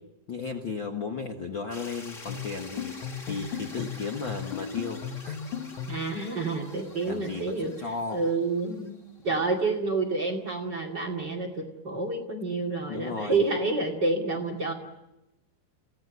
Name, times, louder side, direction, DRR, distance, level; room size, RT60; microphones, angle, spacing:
voice 1, 0.3-3.0 3.3-5.4 7.1-8.2 12.9-13.4, left 4 dB, 85° left, 3 dB, 1.0 m, -35 dB
sound 1, 1.7-9.7, left 2 dB, 25° left, 1.8 m, -47 dB
sound 2, 2.3-6.1, left 8 dB, 60° left, 2.3 m, -36 dB
voice 2, 5.9-7.7 8.1-9.0 9.2-14.7, right 3 dB, 30° right, 4 dB, 2.4 m, -28 dB
28.0 x 17.0 x 9.4 m, 0.95 s
omnidirectional pair, 4.7 m